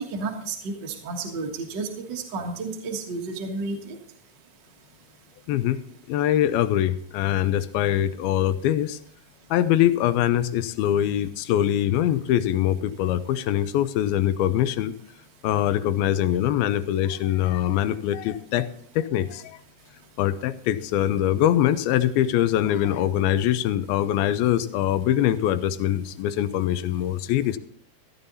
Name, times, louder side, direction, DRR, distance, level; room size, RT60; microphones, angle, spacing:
voice 1, 0.0-4.0, right 3 dB, 55° right, 2 dB, 1.2 m, -32 dB
voice 2, 5.5-5.8 6.1-9.0 9.5-14.9 15.4-18.7 19.0-19.6 20.2-27.6, left 11 dB, 85° left, 13 dB, 2.5 m, -23 dB
15.0 x 10.5 x 4.1 m, 0.62 s
omnidirectional pair, 4.3 m